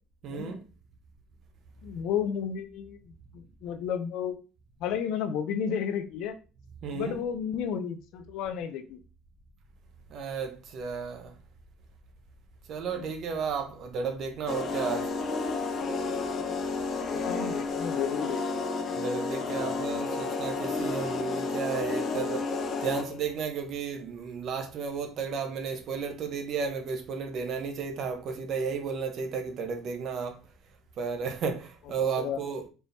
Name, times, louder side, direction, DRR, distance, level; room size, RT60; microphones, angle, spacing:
voice 1, 0.2-0.6 6.8-7.2 10.1-11.3 12.7-15.1 18.9-22.5 22.8-30.4 31.0-32.7, right 5 dB, 55° right, 0.9 m, -33 dB
voice 2, 1.8-4.4 4.8-6.3 6.9-9.0 13.0-13.1 17.1-18.6 32.2-32.4, left 8 dB, 75° left, 0.5 m, -32 dB
sound 1, 14.5-23.2, left 4 dB, 45° left, 0.9 m, -31 dB
4.6 x 3.3 x 2.7 m
cardioid pair, 110°, 0 cm